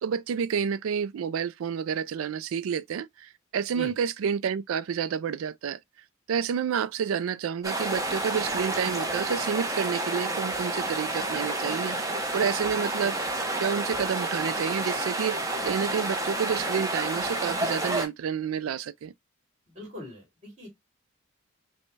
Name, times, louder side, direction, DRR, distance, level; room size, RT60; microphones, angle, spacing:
voice 1, 0.0-5.8 6.3-13.2 13.6-19.1, right 7 dB, 80° right, 0.3 m, -29 dB
sound 1, 7.6-18.1, right 2 dB, 15° right, 0.6 m, -30 dB
voice 2, 19.7-20.7, left 1 dB, 35° right, 2.6 m, -42 dB
5.1 x 2.2 x 3.2 m
head